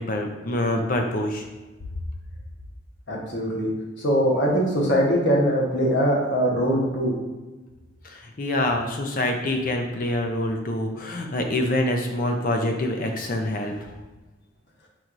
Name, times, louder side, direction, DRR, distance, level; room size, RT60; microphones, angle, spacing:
voice 1, 0.0-1.5 8.0-13.9, left 1 dB, 45° left, 3 dB, 0.5 m, -26 dB
voice 2, 3.1-3.7 4.0-7.1, equal, 60° left, -3 dB, 1.1 m, -22 dB
4.6 x 4.2 x 2.5 m, 1.2 s
head